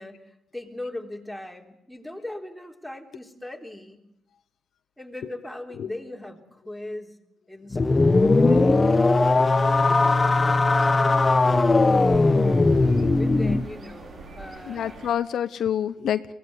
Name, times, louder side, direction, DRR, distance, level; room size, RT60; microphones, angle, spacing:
voice 1, 0.0-4.0 5.0-7.2 7.5-10.1 13.1-15.2, left 1 dB, ahead, 1 dB, 3.6 m, -39 dB
sound 1, 7.7-13.7, left 3 dB, 25° left, 1.2 m, -19 dB
voice 2, 7.8-8.3 11.6-11.7 12.4-12.5 14.7-16.3, left 9 dB, 65° left, 11 dB, 0.8 m, -29 dB
sound 2, 8.9-15.1, right 3 dB, 50° right, 5.3 m, -43 dB
23.0 x 18.0 x 9.6 m, 0.80 s
cardioid pair, 90°, 0 cm